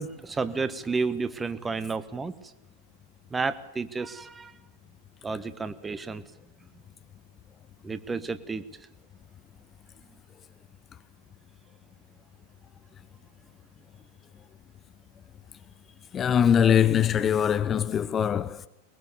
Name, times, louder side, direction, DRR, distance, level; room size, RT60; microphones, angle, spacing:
voice 1, 0.0-2.3 3.3-4.5 5.2-6.2 7.8-8.9, right 4 dB, 15° right, 1.4 m, -31 dB
voice 2, 16.1-18.7, left 8 dB, 25° left, 0.8 m, -22 dB
22.0 x 21.5 x 7.2 m
figure-of-eight pair, 90°, 0 cm